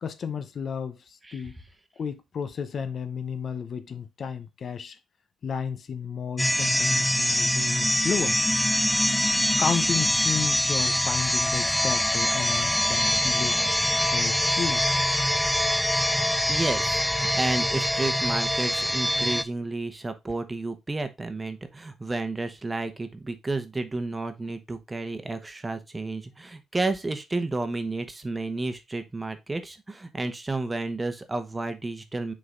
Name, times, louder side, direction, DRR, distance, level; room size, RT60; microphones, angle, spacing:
voice 1, 0.0-1.6 2.0-5.0 5.4-8.4 9.2-13.8 14.1-14.8, left 6 dB, 50° left, 0.8 m, -32 dB
sound 1, 6.4-19.4, equal, 5° left, 0.5 m, -24 dB
voice 2, 16.5-32.3, right 2 dB, 20° right, 1.1 m, -31 dB
6.7 x 3.9 x 3.8 m
cardioid pair, 90°, 0 cm